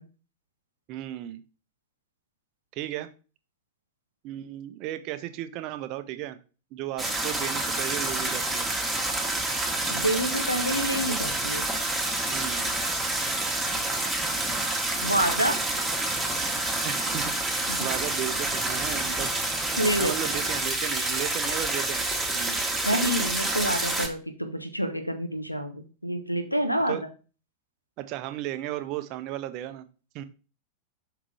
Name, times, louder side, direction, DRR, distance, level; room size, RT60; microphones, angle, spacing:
voice 1, 0.9-1.4 2.7-3.1 4.2-6.4 6.7-8.7 12.3-12.7 16.8-19.4 20.0-22.7 26.9-27.0 28.0-29.9 30.1-30.2, right 13 dB, 40° right, 11 dB, 0.6 m, -35 dB
sound 1, 7.0-24.1, right 2 dB, 10° right, 1.4 m, -28 dB
voice 2, 9.9-11.7 15.0-15.6 17.7-17.8 19.8-20.1 22.8-27.0, equal, 90° left, 8 dB, 0.9 m, -27 dB
5.7 x 3.7 x 4.7 m, 0.35 s
figure-of-eight pair, 90°, 0 cm